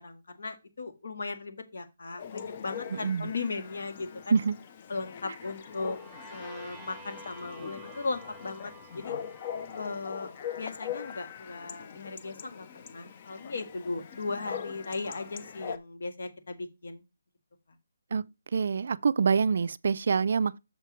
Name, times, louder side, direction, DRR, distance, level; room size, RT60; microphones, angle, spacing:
voice 1, 0.0-4.4 4.9-6.0 6.3-9.1 9.7-10.3 10.6-17.0, left 3 dB, 65° left, 1.7 m, -37 dB
Chatter / Bark / Livestock farm animals working animals, 2.2-15.8, left 8 dB, 25° left, 0.5 m, -42 dB
voice 2, 2.9-3.3 4.3-4.5 18.1-18.2 18.5-20.6, right 5 dB, 50° right, 0.4 m, -26 dB
sound 1, 5.4-11.3, right 1 dB, 5° left, 1.3 m, -50 dB
6.8 x 4.6 x 5.8 m
hypercardioid pair, 175°, 0 cm